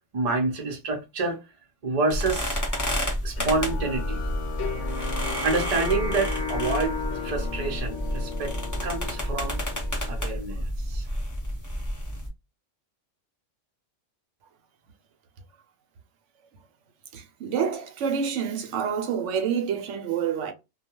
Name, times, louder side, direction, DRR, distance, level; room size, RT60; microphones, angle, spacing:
voice 1, 0.1-1.4 1.8-4.2 5.4-8.5 8.8-9.6 10.1-11.1, right 3 dB, 40° right, 0.6 m, -28 dB
sound 1, 2.1-12.3, equal, 15° left, 0.8 m, -30 dB
sound 2, 3.4-10.2, left 5 dB, 70° left, 1.0 m, -34 dB
voice 2, 17.1-20.5, right 7 dB, 75° right, 0.9 m, -28 dB
2.3 x 2.2 x 2.9 m
omnidirectional pair, 1.3 m